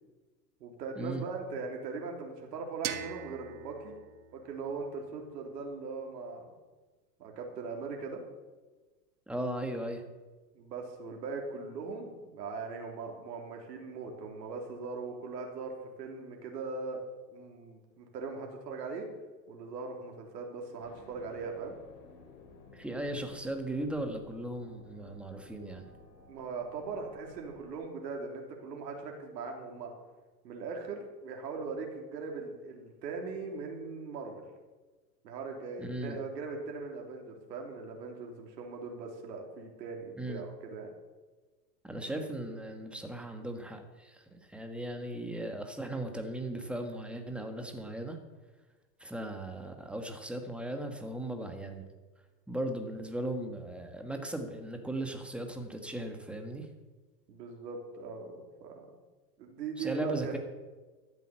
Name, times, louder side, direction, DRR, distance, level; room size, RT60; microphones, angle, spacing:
voice 1, 0.6-3.9 4.3-6.5 7.2-8.2 10.5-15.7 16.0-17.0 17.3-19.1 19.5-21.8 26.3-29.9 30.4-34.4 35.2-40.9 57.3-58.9 59.4-60.3, right 4 dB, 75° right, 1 dB, 3.4 m, -40 dB
sound 1, 2.8-5.7, right 11 dB, 55° right, 1.5 m, -43 dB
voice 2, 9.3-10.0 22.7-25.9 35.8-36.2 40.2-40.4 41.8-48.2 49.0-51.9 52.5-56.7 59.8-60.4, right 1 dB, ahead, 5 dB, 1.4 m, -37 dB
sound 2, 20.8-27.8, left 3 dB, 80° left, 2.8 m, -55 dB
13.0 x 8.2 x 7.6 m, 1.3 s
hypercardioid pair, 135°, 50 cm